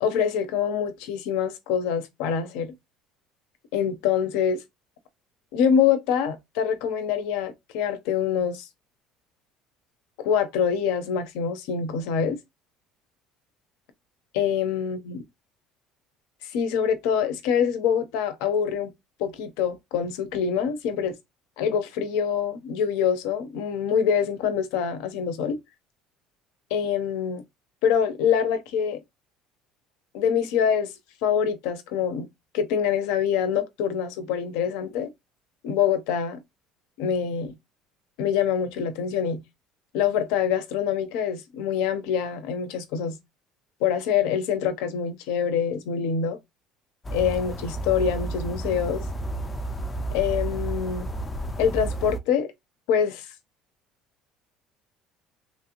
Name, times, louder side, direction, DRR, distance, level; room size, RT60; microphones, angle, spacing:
voice 1, 0.0-2.7 3.7-4.6 5.5-8.7 10.2-12.4 14.3-15.2 16.5-18.9 19.2-21.1 21.6-25.6 26.7-27.4 27.8-29.0 30.1-30.9 31.2-32.3 32.5-35.1 35.6-36.4 37.0-37.5 38.2-39.4 39.9-43.2 43.8-46.4 47.1-49.1 50.1-51.1 51.6-52.5 52.9-53.3, left 7 dB, 80° left, 0.6 m, -25 dB
sound 1, 47.0-52.2, right 1 dB, 15° left, 0.3 m, -31 dB
3.2 x 2.6 x 2.8 m
cardioid pair, 165°, 0 cm